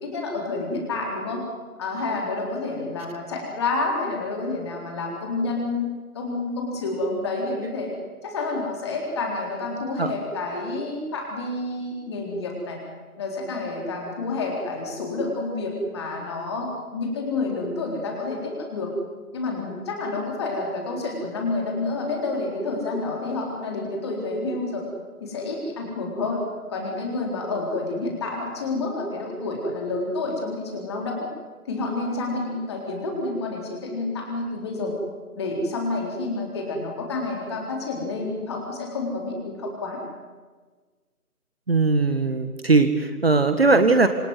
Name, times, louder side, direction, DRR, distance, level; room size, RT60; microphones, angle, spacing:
voice 1, 0.0-1.5 1.8-5.9 6.1-7.9 8.2-12.8 13.2-18.9 19.3-24.8 25.2-26.4 26.7-31.3 31.7-34.9 35.4-40.0, left 3 dB, 20° left, 0 dB, 3.9 m, -29 dB
voice 2, 41.7-44.1, right 3 dB, 40° right, 8 dB, 1.7 m, -19 dB
27.0 x 22.5 x 9.6 m, 1.4 s
figure-of-eight pair, 160°, 45 cm